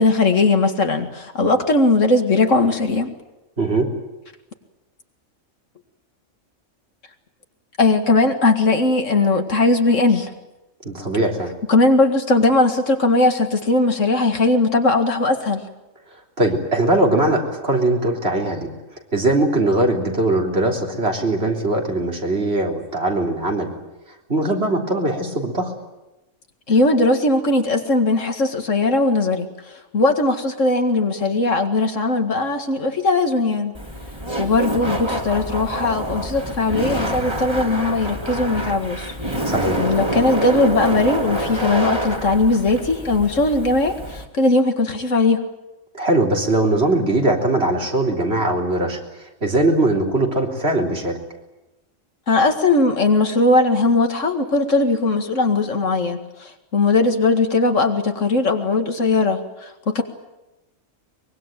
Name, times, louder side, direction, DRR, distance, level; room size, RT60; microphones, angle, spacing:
voice 1, 0.0-3.1 7.8-10.3 11.7-15.7 26.7-33.7 34.4-39.1 39.8-45.4 52.3-60.0, left 2 dB, 70° left, 6 dB, 2.4 m, -19 dB
voice 2, 3.6-3.9 10.8-11.5 16.4-18.7 19.1-23.7 24.3-25.7 39.4-39.8 45.9-49.0 49.4-51.2, right 2 dB, 50° right, 1 dB, 4.0 m, -20 dB
Laughter, 33.7-44.3, right 1 dB, 20° right, 3.1 m, -27 dB
23.5 x 22.0 x 9.1 m, 1.0 s
omnidirectional pair, 1.4 m